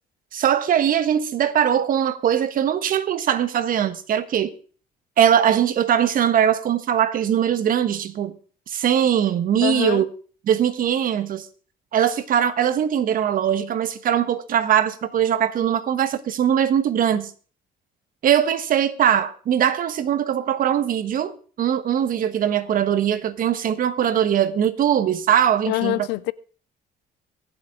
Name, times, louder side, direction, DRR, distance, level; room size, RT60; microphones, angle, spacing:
voice 1, 0.3-4.5 5.2-8.3 8.7-10.1 10.5-11.4 11.9-17.3 18.2-26.1, right 9 dB, 55° right, 1.2 m, -21 dB
voice 2, 9.6-10.1 25.7-26.3, left 20 dB, 90° left, 0.6 m, -24 dB
24.0 x 8.1 x 3.7 m
cardioid pair, 110°, 17 cm